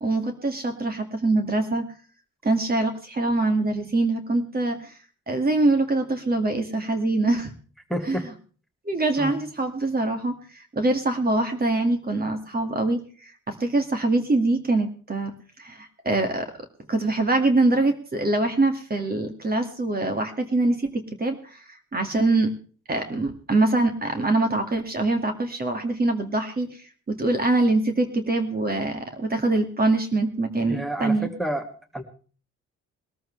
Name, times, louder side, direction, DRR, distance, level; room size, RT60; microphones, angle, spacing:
voice 1, 0.0-1.9 2.4-5.0 5.3-7.5 8.0-8.3 8.9-15.3 15.6-16.5 16.9-22.5 22.9-31.3, right 2 dB, 30° right, 6 dB, 2.0 m, -24 dB
voice 2, 7.9-8.3 9.2-9.4 30.7-31.6 31.9-32.0, equal, ahead, 5 dB, 2.1 m, -29 dB
21.0 x 13.5 x 3.3 m, 0.41 s
cardioid pair, 90°, 30 cm